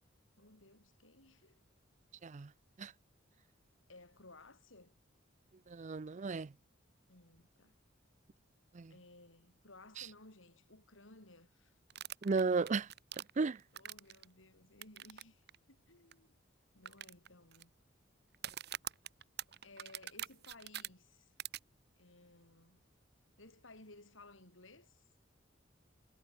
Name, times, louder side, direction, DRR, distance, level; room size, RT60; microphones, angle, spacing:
voice 1, 0.4-1.6 3.9-5.0 7.1-7.8 8.9-11.8 13.7-16.4 16.7-17.7 19.6-21.3 22.0-22.8 23.4-25.0, left 2 dB, 75° left, 6.0 m, -59 dB
voice 2, 5.7-6.5 8.7-8.9 10.0-10.1 12.2-12.9 13.4-13.6, right 4 dB, 40° right, 0.5 m, -34 dB
sound 1, 11.9-14.3 14.8-15.2 15.5-15.6 16.1-16.2 16.9-17.6 18.3-20.9 21.4-21.6, right 12 dB, 55° right, 1.2 m, -44 dB
head